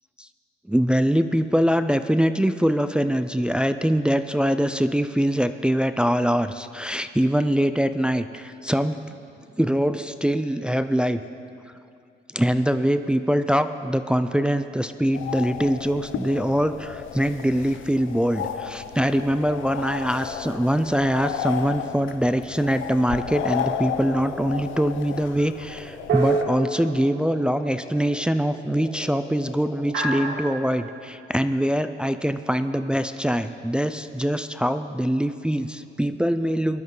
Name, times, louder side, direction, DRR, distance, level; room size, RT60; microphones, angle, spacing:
voice 1, 0.7-9.0 9.6-11.2 12.3-36.8, equal, 5° right, 10 dB, 0.4 m, -23 dB
sound 1, 15.1-26.4, left 9 dB, 75° left, 0.7 m, -33 dB
sound 2, 20.0-22.2 22.5-30.6, left 1 dB, 10° left, 4.2 m, -43 dB
sound 3, 23.7-24.3 26.1-27.4 29.9-30.8, right 3 dB, 65° right, 2.5 m, -28 dB
19.5 x 12.0 x 3.9 m, 2.5 s
cardioid pair, 90°, 20 cm